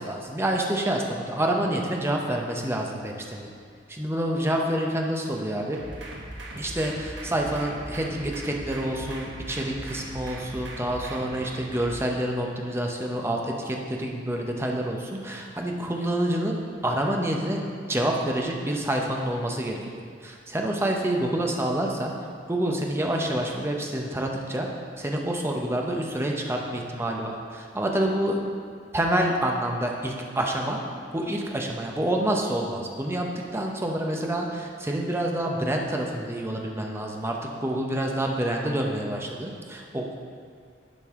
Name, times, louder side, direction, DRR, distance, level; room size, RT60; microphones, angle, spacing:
voice 1, 0.0-3.5 3.9-5.8 6.5-17.6 17.9-19.8 20.2-22.1 22.5-24.7 25.0-28.4 28.9-30.8 31.1-33.2 33.5-40.2, right 1 dB, 15° right, 0 dB, 0.7 m, -27 dB
sound 1, 5.7-11.9, right 1 dB, 70° right, 1.1 m, -39 dB
10.5 x 5.3 x 3.6 m, 2.2 s
head